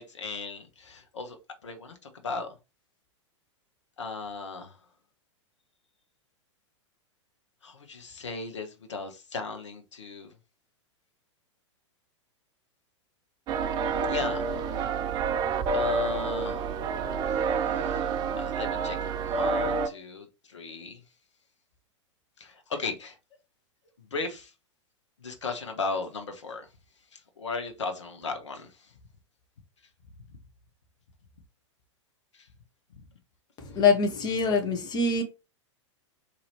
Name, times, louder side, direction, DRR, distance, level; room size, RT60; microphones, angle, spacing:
voice 1, 0.0-1.4 1.6-2.0 2.2-2.5 4.0-4.7 7.6-10.3 14.0-14.5 15.7-16.7 17.2-18.0 18.3-21.0 22.4-23.2 24.1-24.5 25.2-26.7 27.1-28.7 30.3-30.4 32.4-32.5, left 4 dB, 70° left, 1.0 m, -36 dB
sound 1, 13.5-19.9, right 4 dB, 25° right, 0.4 m, -28 dB
voice 2, 33.6-35.2, left 4 dB, 25° left, 1.1 m, -24 dB
4.2 x 2.9 x 2.9 m
figure-of-eight pair, 100°, 16 cm